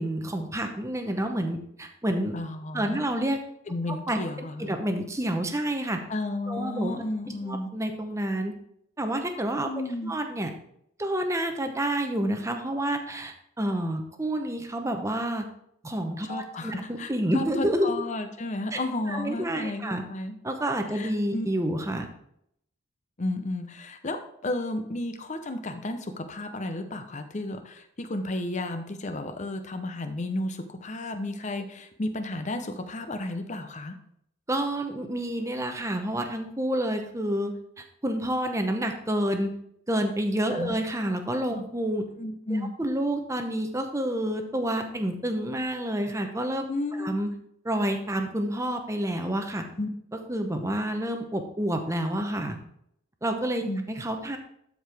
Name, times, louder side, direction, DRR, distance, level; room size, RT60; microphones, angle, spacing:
voice 1, 0.0-2.3 2.7-3.4 4.1-4.2 4.6-6.0 6.5-6.9 7.4-8.5 9.0-9.7 10.0-10.5 11.0-15.5 15.8-18.0 19.1-20.0 20.4-22.1 34.5-39.5 39.9-42.1 42.8-46.7 46.9-47.3 47.6-49.7 50.3-52.6 53.2-54.4, right 1 dB, 15° right, 5 dB, 0.8 m, -29 dB
voice 2, 2.3-3.0 3.7-4.8 6.1-7.7 9.6-10.2 16.2-20.3 20.9-21.5 23.2-34.0 40.5-40.7 41.5-41.6 42.2-42.7 46.7-47.1 49.8-49.9 53.6-53.8, left 2 dB, 35° left, 7 dB, 0.7 m, -33 dB
12.5 x 4.7 x 3.4 m, 0.73 s
head